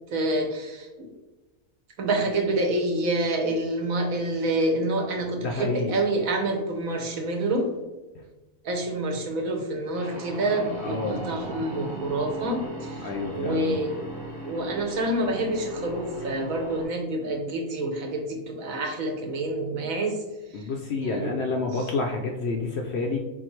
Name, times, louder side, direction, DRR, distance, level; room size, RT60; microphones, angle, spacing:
voice 1, 0.1-1.1 2.0-7.7 8.6-14.1 14.4-20.2 20.5-21.4 21.7-21.9, right 1 dB, 70° right, 2 dB, 1.2 m, -28 dB
voice 2, 5.4-5.9 10.8-11.2 13.0-13.8 20.5-23.2, left 3 dB, 65° left, 2 dB, 0.7 m, -29 dB
sound 1, 9.9-16.9, right 1 dB, 40° right, 1.3 m, -37 dB
4.6 x 3.7 x 3.1 m, 1.1 s
omnidirectional pair, 1.5 m